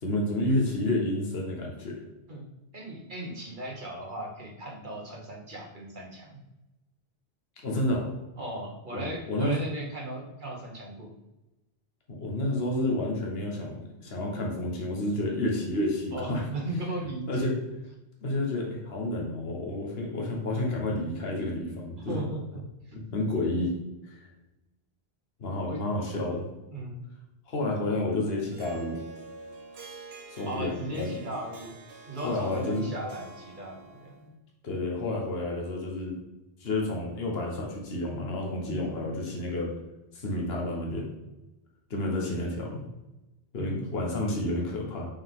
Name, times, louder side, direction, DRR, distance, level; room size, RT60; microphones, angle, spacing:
voice 1, 0.0-2.0 7.6-8.1 8.9-9.6 12.1-16.4 17.3-17.5 18.2-22.2 22.9-23.7 24.0-24.2 25.4-26.5 27.5-29.0 30.3-31.1 32.2-32.8 34.6-36.1 36.6-39.7 40.1-41.1 41.9-42.9 43.5-45.1, left 1 dB, 70° left, -1 dB, 1.5 m, -30 dB
voice 2, 2.7-6.4 8.4-11.1 16.1-17.5 22.1-22.6 25.7-25.8 26.7-27.0 30.4-31.7 32.1-34.3 38.6-39.0 43.6-43.8, right 1 dB, 50° right, -1 dB, 1.4 m, -37 dB
Harp, 28.5-34.3, right 2 dB, 70° right, 1.1 m, -46 dB
5.6 x 5.2 x 3.7 m, 0.99 s
omnidirectional pair, 1.1 m